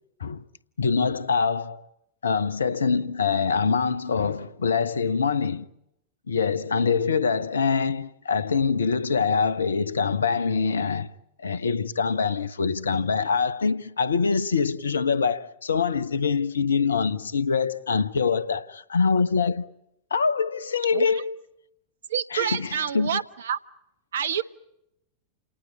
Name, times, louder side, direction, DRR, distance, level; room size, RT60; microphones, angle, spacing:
voice 1, 0.8-1.8 2.2-5.7 6.3-11.1 11.4-19.7 20.1-21.4 22.3-23.2, left 5 dB, 70° left, 0.9 m, -24 dB
voice 2, 22.1-23.6 24.1-24.4, right 8 dB, 65° right, 1.0 m, -27 dB
28.5 x 19.0 x 8.9 m
figure-of-eight pair, 90°, 0 cm